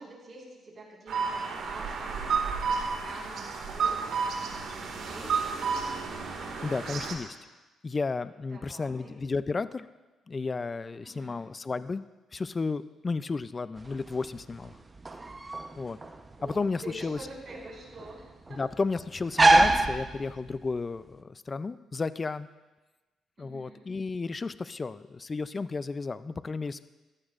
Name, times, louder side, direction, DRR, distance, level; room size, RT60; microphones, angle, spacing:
voice 1, 0.0-5.6 8.5-9.1 11.0-11.4 16.4-18.6 23.4-23.8, right 2 dB, 45° right, -4 dB, 4.6 m, -47 dB
sound 1, 1.1-7.1, right 5 dB, 70° right, 2.0 m, -31 dB
voice 2, 6.6-7.4 7.8-9.9 10.3-12.0 12.3-14.7 15.8-16.0 16.4-17.2 18.6-22.5 23.4-26.8, left 4 dB, 30° left, 14 dB, 0.4 m, -33 dB
sound 2, 13.8-20.7, right 2 dB, 25° right, 0.9 m, -27 dB
15.0 x 13.0 x 2.5 m, 1.1 s
cardioid pair, 90°, 0 cm